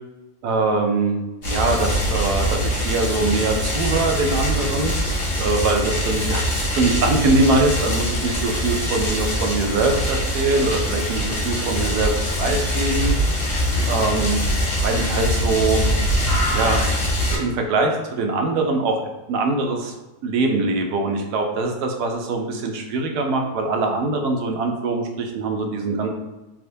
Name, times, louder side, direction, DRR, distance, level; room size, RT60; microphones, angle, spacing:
voice 1, 0.4-5.0 5.4-6.4 6.7-13.5 13.9-14.4 14.8-15.8 16.5-16.9 17.3-19.0 19.3-19.9 20.2-26.1, right 3 dB, 90° right, 3 dB, 1.2 m, -22 dB
sound 1, 1.4-17.4, equal, 45° left, 1.1 m, -23 dB
3.5 x 2.8 x 2.6 m, 1.1 s
omnidirectional pair, 1.7 m